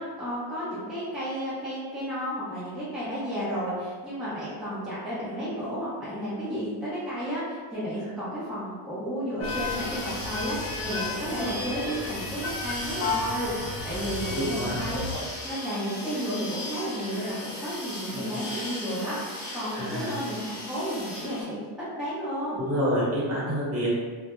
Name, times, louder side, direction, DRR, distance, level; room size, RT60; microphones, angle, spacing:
voice 1, 0.0-21.6 22.0-22.6, equal, ahead, -11 dB, 0.6 m, -32 dB
sound 1, 9.4-15.2, left 3 dB, 80° left, 0.7 m, -34 dB
sound 2, 9.4-21.4, left 1 dB, 25° left, 0.9 m, -37 dB
voice 2, 14.2-14.8 18.1-18.3 19.7-20.1 22.6-23.9, equal, 30° right, -7 dB, 1.0 m, -28 dB
2.1 x 2.1 x 2.9 m, 1.5 s
cardioid pair, 110°, 47 cm